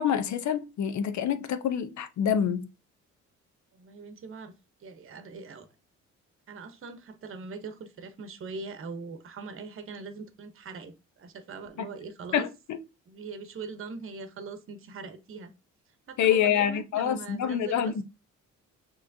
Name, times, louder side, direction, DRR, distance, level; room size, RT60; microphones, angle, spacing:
voice 1, 0.0-2.7 12.3-12.8 16.2-18.0, left 9 dB, 70° left, 0.7 m, -26 dB
voice 2, 3.7-4.5 4.8-5.7 6.5-12.5 13.1-15.5 16.1-17.9, right 4 dB, 45° right, 0.9 m, -41 dB
6.3 x 3.1 x 2.7 m
cardioid pair, 90°, 30 cm